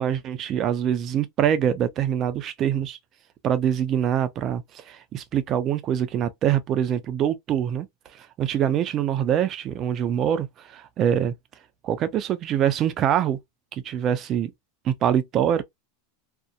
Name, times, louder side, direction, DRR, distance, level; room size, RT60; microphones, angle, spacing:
voice 1, 0.0-3.0 3.4-7.9 8.2-11.3 11.8-13.4 13.7-14.5 14.8-15.6, right 9 dB, 40° right, 0.4 m, -24 dB
2.6 x 2.1 x 2.3 m
supercardioid pair, 120°, 0 cm